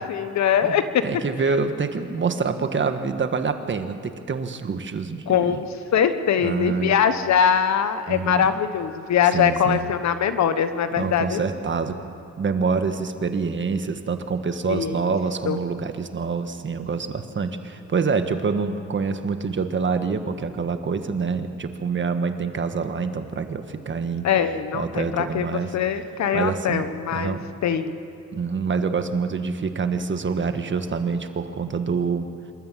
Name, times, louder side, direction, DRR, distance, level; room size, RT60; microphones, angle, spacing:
voice 1, 0.0-1.0 5.3-5.7 5.9-11.4 14.7-14.9 15.5-15.6 24.2-28.0, left 8 dB, 65° left, 10 dB, 1.3 m, -22 dB
voice 2, 0.6-5.6 6.4-6.9 8.1-8.4 9.3-9.9 10.9-24.3 24.7-25.8 26.3-26.8 27.1-27.5 28.3-32.3, right 5 dB, 40° right, 8 dB, 1.6 m, -26 dB
27.0 x 13.5 x 7.6 m, 2.7 s
cardioid pair, 90°, 30 cm